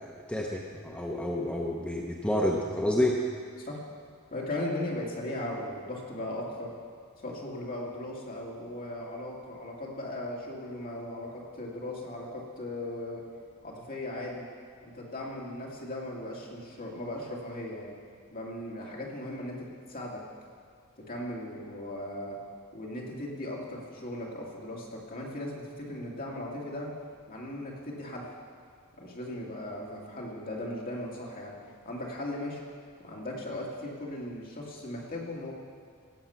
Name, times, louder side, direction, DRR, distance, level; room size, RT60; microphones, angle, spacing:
voice 1, 0.0-3.2, left 1 dB, 5° left, -2 dB, 0.7 m, -29 dB
voice 2, 4.3-6.7 7.2-13.2 13.6-14.5 14.8-17.9 18.3-20.2 21.0-22.4 22.7-26.9 27.3-28.3 29.0-31.6 31.8-32.6 33.0-35.5, left 1 dB, 40° left, -3 dB, 2.3 m, -37 dB
16.5 x 7.3 x 5.7 m, 2.1 s
head